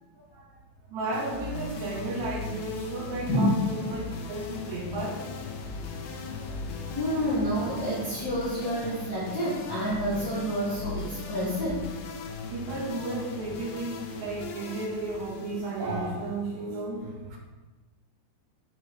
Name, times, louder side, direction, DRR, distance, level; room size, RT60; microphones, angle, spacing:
voice 1, 0.9-5.2 12.5-17.4, right 2 dB, 65° right, -2 dB, 1.9 m, -33 dB
sound 1, 1.1-16.5, left 4 dB, 90° left, 3.1 m, -39 dB
sound 2, 1.6-8.4, left 6 dB, 70° left, 4.8 m, -46 dB
voice 2, 6.9-11.9, equal, 40° left, -12 dB, 1.4 m, -28 dB
12.5 x 5.0 x 3.1 m, 1.2 s
omnidirectional pair, 5.1 m